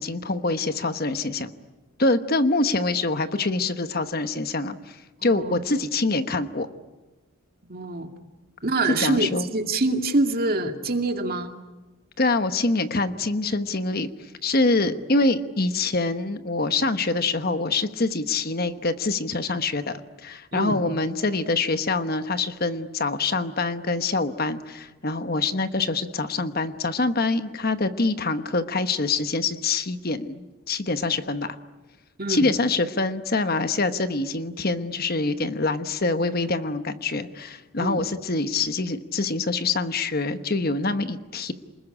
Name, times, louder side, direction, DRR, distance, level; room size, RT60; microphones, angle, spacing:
voice 1, 0.0-1.5 2.0-5.0 5.2-6.7 9.0-9.5 12.2-14.1 14.4-31.5 32.3-41.5, left 3 dB, 45° left, 10 dB, 1.1 m, -25 dB
voice 2, 5.2-5.6 7.7-8.1 8.6-11.5 20.5-20.8 32.2-32.5 37.8-38.0, right 2 dB, 40° right, 5 dB, 2.3 m, -25 dB
28.5 x 21.0 x 9.9 m, 1.1 s
head